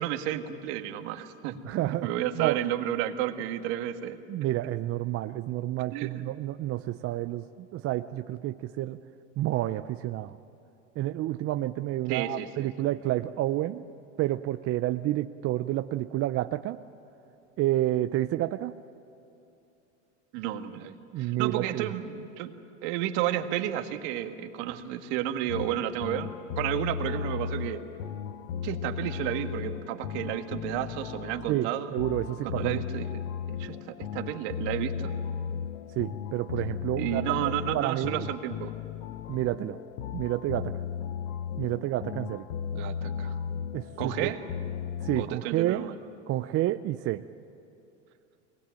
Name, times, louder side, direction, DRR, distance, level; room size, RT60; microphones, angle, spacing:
voice 1, 0.0-1.6 2.0-4.2 5.9-6.2 12.1-12.7 20.3-22.5 22.8-26.3 26.6-27.8 28.6-31.9 32.4-33.1 33.5-35.1 37.0-38.7 42.7-43.4 44.0-44.4 45.2-46.0, right 12 dB, 65° right, 7 dB, 1.7 m, -32 dB
voice 2, 1.6-2.1 2.3-2.6 4.3-9.0 9.4-10.4 11.0-13.8 14.2-16.8 17.6-18.7 21.1-21.9 31.5-32.8 36.0-38.3 39.3-39.8 40.1-40.8 41.6-42.5 43.7-44.3 45.0-45.9 46.3-47.2, right 15 dB, 40° right, 10 dB, 0.6 m, -29 dB
sound 1, 25.5-45.3, left 7 dB, 80° left, 0.9 m, -36 dB
23.0 x 20.0 x 9.0 m, 2.8 s
supercardioid pair, 110°, 37 cm